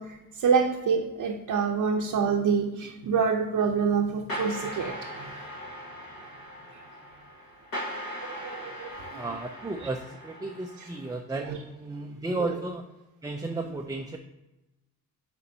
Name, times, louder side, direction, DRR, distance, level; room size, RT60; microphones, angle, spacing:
voice 1, 0.0-5.3 8.2-9.3 9.8-9.9 10.8-10.9 11.4-11.6 12.4-12.6, right 6 dB, 55° right, 0 dB, 0.8 m, -27 dB
sound 1, 4.3-11.1, equal, 60° left, 2.0 m, -39 dB
voice 2, 9.1-12.8 13.2-14.2, right 2 dB, 10° right, 3 dB, 0.5 m, -34 dB
8.7 x 4.2 x 2.8 m, 1.0 s
supercardioid pair, 55°, 39 cm